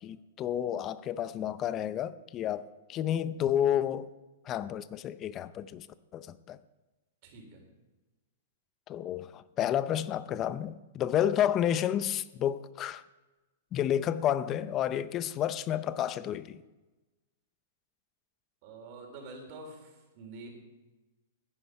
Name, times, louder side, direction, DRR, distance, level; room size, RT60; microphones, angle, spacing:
voice 1, 0.0-2.6 2.9-4.1 4.5-5.9 6.1-6.6 8.9-13.0 13.7-16.6, left 10 dB, 25° left, 0.5 m, -30 dB
voice 2, 7.2-7.6 11.2-11.3 18.6-20.5, right 2 dB, 40° right, 3.8 m, -47 dB
15.5 x 10.0 x 4.8 m
hypercardioid pair, 155°, 0 cm